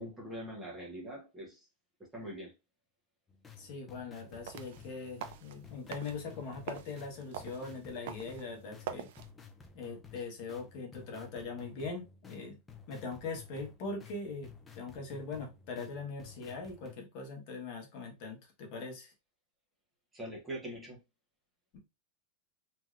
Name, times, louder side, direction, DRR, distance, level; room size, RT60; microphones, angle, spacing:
voice 1, 0.0-1.7 2.1-2.5 20.1-21.0, equal, 5° right, 0.8 m, -43 dB
sound 1, 3.3-16.9, left 6 dB, 10° left, 0.4 m, -54 dB
voice 2, 3.6-9.1 9.7-12.6 12.9-14.5 14.7-19.1, left 4 dB, 40° left, 1.0 m, -41 dB
sound 2, 4.3-9.3, right 8 dB, 60° right, 0.4 m, -46 dB
3.2 x 2.6 x 2.4 m
supercardioid pair, 175°, 0 cm